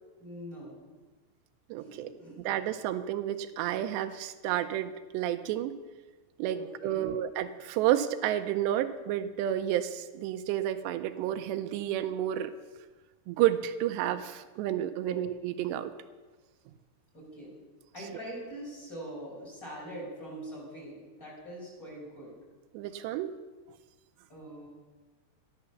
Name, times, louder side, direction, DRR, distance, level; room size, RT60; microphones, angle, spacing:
voice 1, 0.2-0.7 1.8-2.4 6.5-7.1 15.0-15.1 17.1-17.5 17.9-22.4 24.3-24.7, equal, 20° left, -4 dB, 5.9 m, -43 dB
voice 2, 1.7-2.1 2.4-5.7 6.4-12.5 13.3-15.9 22.7-23.3, right 12 dB, 85° right, 9 dB, 2.8 m, -30 dB
13.5 x 11.5 x 7.0 m, 1.3 s
omnidirectional pair, 4.9 m